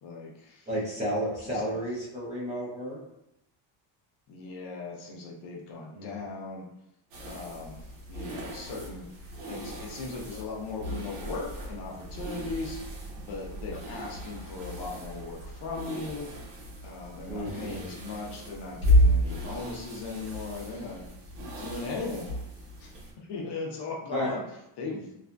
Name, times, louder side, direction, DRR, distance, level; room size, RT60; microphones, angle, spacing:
voice 1, 0.0-0.7 1.4-1.7 4.3-6.7 7.3-9.1 9.5-16.6 16.8-21.1 21.6-22.3 22.8-24.4 24.8-25.1, left 3 dB, 55° left, -1 dB, 0.6 m, -38 dB
voice 2, 0.7-3.0 5.9-6.1 17.3-17.8 24.1-24.3, equal, 15° right, -9 dB, 0.5 m, -32 dB
sound 1, 7.1-23.1, equal, 85° right, 0.9 m, -32 dB
2.7 x 2.5 x 2.2 m, 0.83 s
cardioid pair, 170°, 49 cm